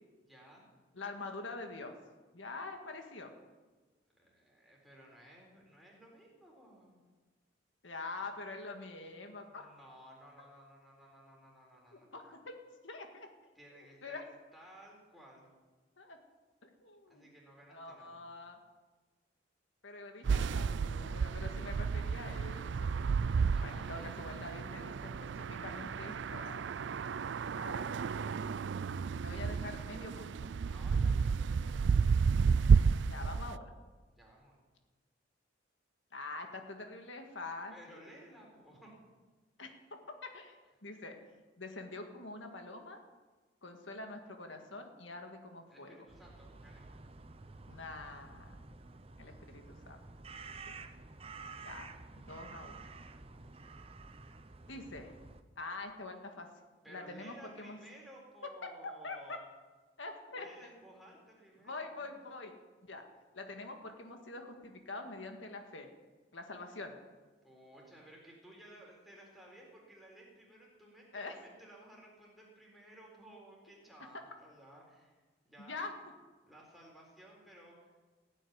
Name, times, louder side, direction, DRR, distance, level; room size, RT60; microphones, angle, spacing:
voice 1, 0.2-0.7 4.1-7.0 9.5-12.2 13.5-14.2 14.5-15.5 17.1-18.2 23.5-24.2 30.6-32.9 34.1-34.5 37.7-38.9 45.7-46.9 56.8-59.4 60.4-62.1 67.4-75.2 75.4-75.8 76.5-78.0, right 1 dB, ahead, -3 dB, 4.2 m, -57 dB
voice 2, 0.9-1.9 2.3-3.3 7.8-9.7 11.9-12.6 12.8-13.3 13.7-14.2 16.0-16.2 16.6-17.3 17.7-18.6 19.8-23.0 23.6-26.6 27.5-27.9 29.2-30.3 33.1-33.8 36.1-38.0 39.6-39.7 40.2-41.1 41.6-43.0 43.6-46.1 47.7-48.5 49.2-50.0 51.6-51.9 52.2-52.8 54.7-55.2 55.6-56.5 56.9-57.8 58.6-58.7 59.0-59.4 60.0-60.5 61.6-62.6 62.9-63.0 63.3-65.9 66.3-66.9 71.1-71.3 75.6-75.9, left 3 dB, 80° left, 4 dB, 1.8 m, -45 dB
sound 1, 20.2-33.6, right 5 dB, 70° right, 0.4 m, -31 dB
sound 2, 46.1-55.4, right 3 dB, 30° right, 0.7 m, -51 dB
16.5 x 9.0 x 9.5 m, 1.3 s
head